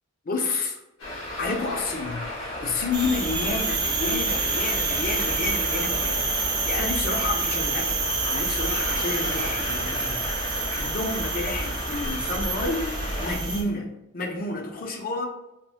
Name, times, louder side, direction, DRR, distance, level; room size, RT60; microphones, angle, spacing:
voice 1, 0.2-0.8 1.4-8.0 8.3-13.9 14.1-15.2, left 3 dB, 45° left, 2 dB, 0.6 m, -30 dB
Traffic noise roadway noise, 1.0-13.3, left 1 dB, 85° left, 1.2 m, -35 dB
sound 1, 2.9-13.6, right 3 dB, 20° right, 0.4 m, -28 dB
3.4 x 2.1 x 2.5 m, 0.92 s
head